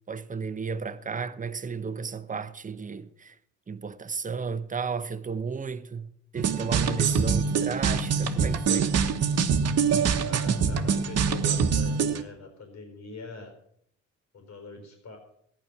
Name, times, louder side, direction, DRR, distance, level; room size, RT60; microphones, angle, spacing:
voice 1, 0.1-3.4 3.7-8.9, right 5 dB, 25° right, 0.9 m, -33 dB
sound 1, 6.4-12.2, right 6 dB, 55° right, 1.2 m, -24 dB
voice 2, 10.2-13.5 14.3-15.2, left 4 dB, 65° left, 4.3 m, -44 dB
14.5 x 10.0 x 6.0 m
cardioid pair, 90°, 30 cm